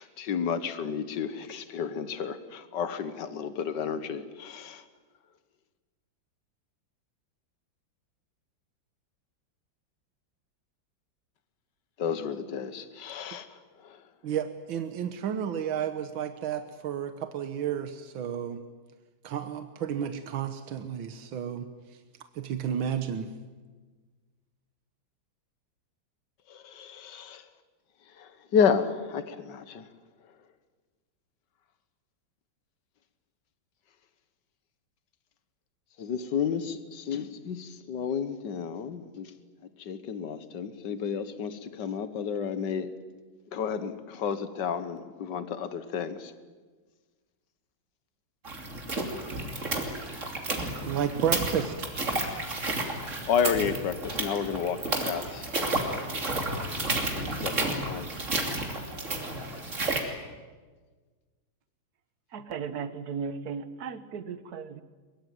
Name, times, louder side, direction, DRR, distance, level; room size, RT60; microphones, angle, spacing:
voice 1, 0.0-4.8 12.0-14.0 26.5-27.5 28.2-29.9 36.0-39.3 39.8-42.9 43.5-46.3 53.3-55.5 55.7-56.2 57.1-58.2 58.8-58.9, left 7 dB, 65° left, 2.0 m, -31 dB
voice 2, 14.2-18.6 19.2-21.7 22.4-23.3 50.8-51.9, right 8 dB, 85° right, 1.9 m, -32 dB
sound 1, 48.4-60.0, right 2 dB, 40° right, 3.4 m, -31 dB
voice 3, 62.3-64.8, right 6 dB, 55° right, 1.7 m, -36 dB
22.5 x 22.5 x 9.3 m
omnidirectional pair, 2.1 m